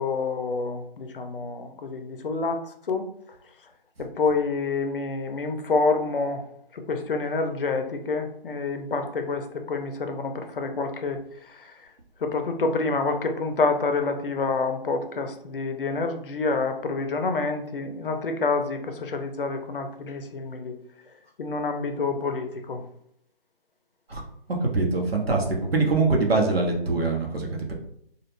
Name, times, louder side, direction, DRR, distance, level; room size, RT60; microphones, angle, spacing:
voice 1, 0.0-2.6 2.9-3.1 4.0-6.4 6.7-11.2 11.5-11.7 12.2-20.7 21.4-22.8, left 3 dB, 65° left, 6 dB, 0.5 m, -27 dB
voice 2, 24.6-25.4 25.7-27.7, right 3 dB, 85° right, 1 dB, 0.9 m, -23 dB
2.3 x 2.1 x 3.1 m, 0.72 s
figure-of-eight pair, 155°, 30 cm